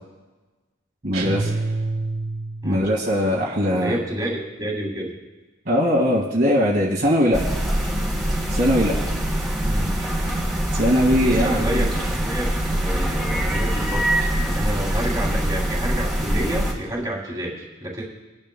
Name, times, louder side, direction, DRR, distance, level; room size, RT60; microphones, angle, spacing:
voice 1, 1.0-1.5 2.6-4.0 5.7-7.4 8.5-9.0 10.7-11.9, equal, 45° right, -4 dB, 2.0 m, -20 dB
sound 1, 1.1-2.8, right 3 dB, 80° right, 2.3 m, -27 dB
voice 2, 3.7-5.2 9.6-10.0 11.2-18.1, right 1 dB, 15° right, -3 dB, 3.0 m, -29 dB
sound 2, 7.3-16.7, right 1 dB, ahead, 3.5 m, -23 dB
23.5 x 10.5 x 2.3 m, 1.2 s
head